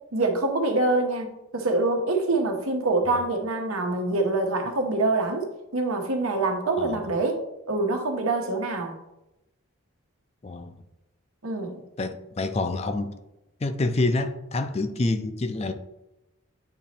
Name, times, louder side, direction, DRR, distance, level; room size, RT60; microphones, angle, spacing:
voice 1, 0.1-1.3 1.5-5.5 5.7-7.4 7.7-8.9 11.4-11.8, right 2 dB, 90° right, 3 dB, 1.1 m, -25 dB
voice 2, 6.8-7.1 10.4-10.8 12.0-13.1 13.6-15.7, left 2 dB, 30° left, 9 dB, 0.4 m, -27 dB
8.7 x 3.0 x 4.3 m, 0.92 s
head